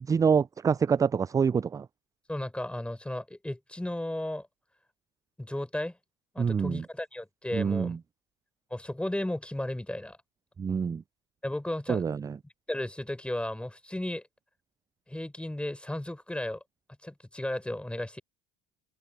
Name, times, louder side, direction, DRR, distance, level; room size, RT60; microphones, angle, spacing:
voice 1, 0.0-1.9 6.4-6.8 7.5-8.0 10.6-11.0 11.9-12.3, right 6 dB, 15° right, 0.3 m, -26 dB
voice 2, 2.3-4.5 5.4-6.0 6.3-8.0 8.7-10.2 11.4-12.0 12.4-14.2 15.1-16.6 17.0-18.2, left 1 dB, 5° left, 5.2 m, -34 dB
hypercardioid pair, 85°, 20 cm